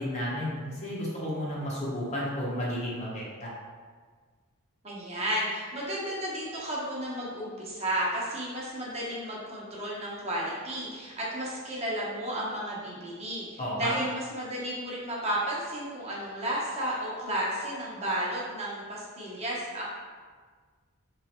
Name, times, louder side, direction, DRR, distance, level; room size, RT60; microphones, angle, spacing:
voice 1, 0.0-3.5 13.6-13.9, equal, 30° left, -6 dB, 0.9 m, -32 dB
voice 2, 4.8-19.8, right 1 dB, 30° right, -6 dB, 0.9 m, -33 dB
3.4 x 3.2 x 4.3 m, 1.5 s
head